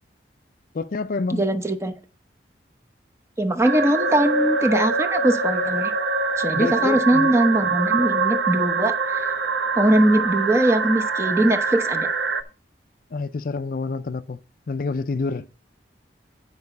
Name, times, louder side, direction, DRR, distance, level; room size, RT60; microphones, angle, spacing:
voice 1, 0.7-1.4 6.5-7.3 13.1-14.4 14.7-15.5, left 4 dB, 50° left, 0.4 m, -27 dB
voice 2, 1.3-1.9 3.4-5.9 6.4-9.3 9.8-12.1, right 1 dB, 15° right, 0.9 m, -21 dB
sound 1, 3.6-12.4, right 4 dB, 75° right, 0.8 m, -24 dB
9.5 x 4.9 x 5.3 m
head